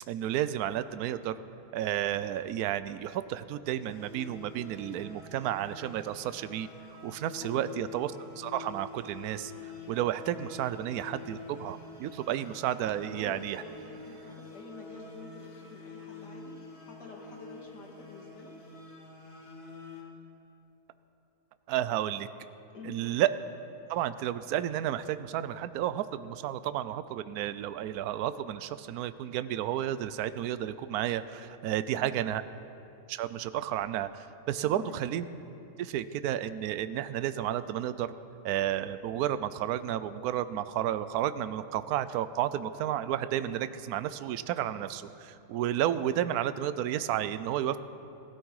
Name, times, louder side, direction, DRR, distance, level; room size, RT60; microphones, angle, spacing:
voice 1, 0.1-1.4 1.7-6.7 7.0-9.5 9.9-13.6 21.7-22.3 22.8-23.3 23.9-32.4 33.1-35.2 35.8-38.1 38.4-47.8, right 11 dB, 70° right, 13 dB, 1.0 m, -32 dB
sound 1, 3.9-20.0, left 3 dB, 20° left, 1.8 m, -47 dB
voice 2, 7.4-7.7 13.0-16.5 16.8-18.5 22.7-23.0 31.9-32.2 34.6-35.0, left 4 dB, 80° left, 0 dB, 2.4 m, -47 dB
19.0 x 12.5 x 4.8 m, 2.8 s
omnidirectional pair, 1.8 m